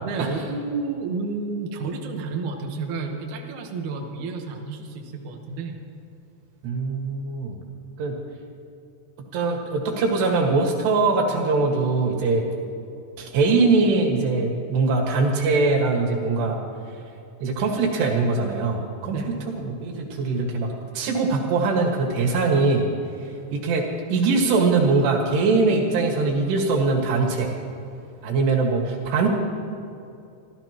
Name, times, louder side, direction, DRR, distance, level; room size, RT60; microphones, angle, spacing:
voice 1, 0.0-5.8 19.1-19.3, right 4 dB, 80° right, 2 dB, 1.7 m, -31 dB
voice 2, 6.6-7.6 8.0-8.1 9.3-12.4 13.2-16.6 17.4-19.2 19.6-22.9 23.2-27.5 28.2-29.3, right 3 dB, 65° right, 0 dB, 3.7 m, -22 dB
26.0 x 14.5 x 3.0 m, 2.7 s
omnidirectional pair, 5.6 m